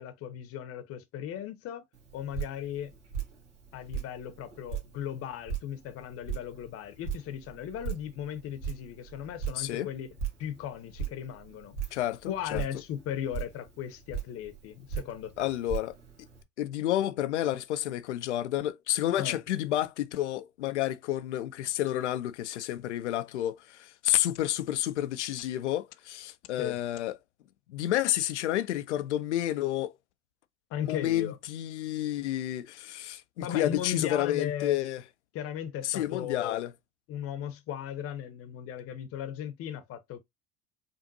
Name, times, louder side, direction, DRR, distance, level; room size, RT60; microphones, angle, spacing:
voice 1, 0.0-1.8 2.1-2.9 3.7-10.1 10.4-11.8 12.3-15.5 19.2-19.4 26.6-26.8 30.7-31.4 33.4-34.8 35.3-36.6 37.1-40.2, left 10 dB, 40° left, 0.9 m, -37 dB
Drip, 1.9-16.4, right 8 dB, 80° right, 1.6 m, -40 dB
voice 2, 9.6-9.9 11.9-12.6 15.4-16.0 16.6-27.1 27.7-29.9 30.8-35.0 35.8-36.7, left 13 dB, 75° left, 0.6 m, -30 dB
5.2 x 2.5 x 2.6 m
figure-of-eight pair, 75°, 35 cm